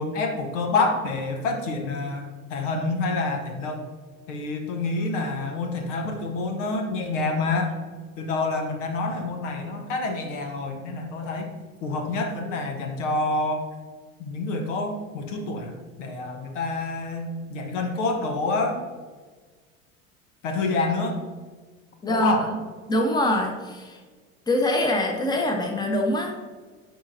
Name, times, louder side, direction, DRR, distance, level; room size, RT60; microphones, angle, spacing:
voice 1, 0.0-2.2 2.5-3.8 4.3-7.7 8.2-11.5 11.8-13.7 14.2-18.8 20.4-21.2 22.1-22.5, left 3 dB, 65° left, 4 dB, 1.1 m, -27 dB
voice 2, 22.0-22.6 22.9-24.0 24.5-26.4, left 1 dB, 10° left, 2 dB, 1.0 m, -24 dB
10.0 x 4.8 x 2.6 m, 1.4 s
figure-of-eight pair, 75°, 40 cm